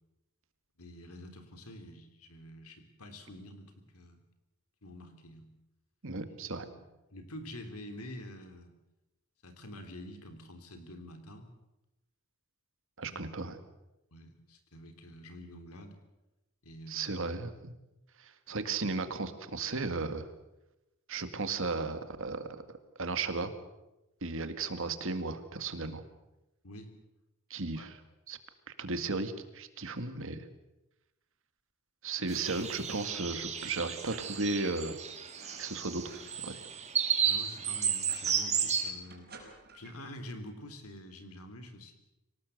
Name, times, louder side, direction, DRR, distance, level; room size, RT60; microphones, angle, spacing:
voice 1, 0.8-4.2 4.8-5.5 6.3-6.8 7.1-8.7 9.4-11.5 13.0-13.2 14.1-16.0 16.6-17.1 26.6-26.9 27.7-27.9 37.2-39.3 39.7-41.9, left 1 dB, 80° left, 7 dB, 3.3 m, -47 dB
voice 2, 6.0-6.7 13.0-13.6 16.9-17.7 18.2-20.3 21.1-22.5 23.0-23.5 24.2-26.0 27.5-28.0 28.3-28.4 28.8-30.4 32.0-35.0 35.6-36.0 36.4-36.6, right 3 dB, 60° right, 9 dB, 2.0 m, -35 dB
sound 1, 32.3-38.9, right 7 dB, 30° right, 2.6 m, -33 dB
sound 2, 33.0-33.3 33.6-33.7 34.0-35.0 35.3-36.6 36.9-38.6 39.0-40.1, right 3 dB, 45° right, 5.7 m, -54 dB
25.0 x 18.5 x 7.9 m, 0.96 s
head